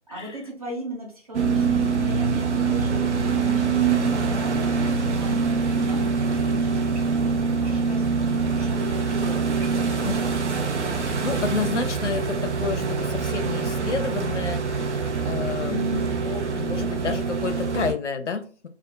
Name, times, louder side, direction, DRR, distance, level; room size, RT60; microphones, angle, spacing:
voice 1, 0.1-10.1 15.6-16.2, equal, 35° right, -3 dB, 0.8 m, -37 dB
sound 1, 1.3-17.9, right 5 dB, 85° right, 0.6 m, -24 dB
voice 2, 10.9-15.8 16.2-18.7, left 5 dB, 85° left, 7 dB, 0.6 m, -30 dB
2.7 x 2.0 x 2.3 m, 0.40 s
figure-of-eight pair, 160°, 34 cm